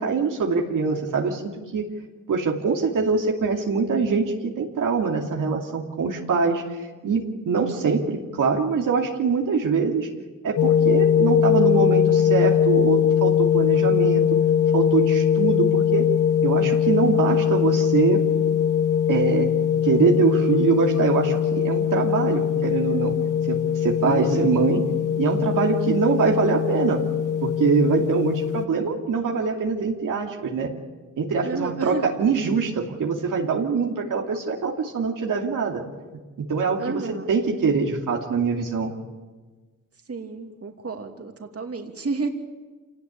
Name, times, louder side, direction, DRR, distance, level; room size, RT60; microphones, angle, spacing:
voice 1, 0.0-1.4 1.7-1.9 2.3-6.6 7.0-10.1 10.4-14.2 14.7-16.1 16.4-18.2 19.1-19.5 19.8-23.2 23.5-24.8 25.2-27.1 27.4-30.7 31.2-35.8 36.4-38.9, right 5 dB, 80° right, 0 dB, 2.7 m, -23 dB
sound 1, 10.6-28.7, left 8 dB, 75° left, 1.2 m, -21 dB
voice 2, 24.0-24.6 31.4-32.1 36.8-37.3 40.1-42.3, right 3 dB, 45° right, 4 dB, 2.8 m, -31 dB
26.5 x 18.5 x 8.6 m, 1.3 s
cardioid pair, 60°, 32 cm